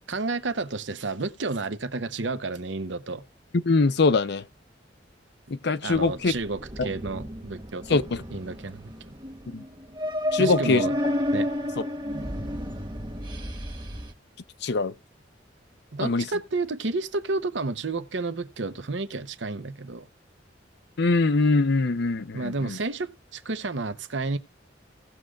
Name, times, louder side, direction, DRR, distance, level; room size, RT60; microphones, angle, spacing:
voice 1, 0.1-3.2 5.8-8.0 8.3-8.9 10.4-11.0 11.3-11.5 15.9-20.0 22.3-24.4, right 3 dB, 75° right, 0.9 m, -31 dB
voice 2, 3.5-4.4 5.5-6.3 6.8-6.9 7.9-8.2 9.5-9.6 10.3-10.8 14.6-14.9 16.0-16.3 21.0-22.8, left 3 dB, 65° left, 0.6 m, -23 dB
sound 1, 5.9-14.1, left 1 dB, 25° right, 1.3 m, -32 dB
18.0 x 6.4 x 2.4 m
head